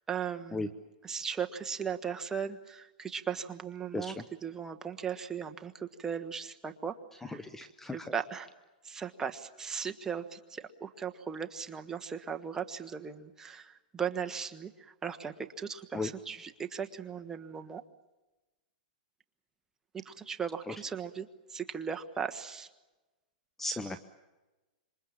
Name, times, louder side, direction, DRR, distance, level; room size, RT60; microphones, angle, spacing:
voice 1, 0.1-0.7 1.0-4.1 4.4-7.4 7.9-8.5 8.8-17.8 19.9-22.7, right 7 dB, 10° right, 5 dB, 1.3 m, -37 dB
voice 2, 3.9-4.2 7.2-8.1 15.9-16.1 20.7-20.8 23.6-24.0, left 2 dB, 5° left, 10 dB, 0.9 m, -36 dB
27.0 x 24.0 x 7.4 m, 1.1 s
hypercardioid pair, 145°, 5 cm